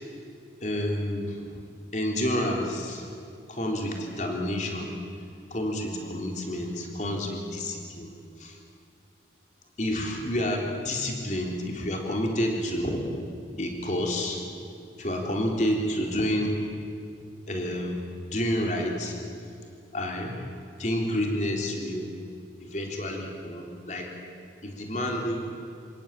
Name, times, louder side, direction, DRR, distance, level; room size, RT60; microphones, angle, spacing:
voice 1, 0.6-1.6 1.9-3.1 3.5-4.9 5.5-8.1 8.4-8.6 9.8-13.0 13.6-14.4 15.0-16.6 17.5-18.0 18.3-19.2 19.9-20.5 20.8-22.1 22.6-24.1 24.6-25.5, left 1 dB, 40° left, 1 dB, 3.5 m, -29 dB
28.5 x 17.5 x 8.9 m, 2.5 s
head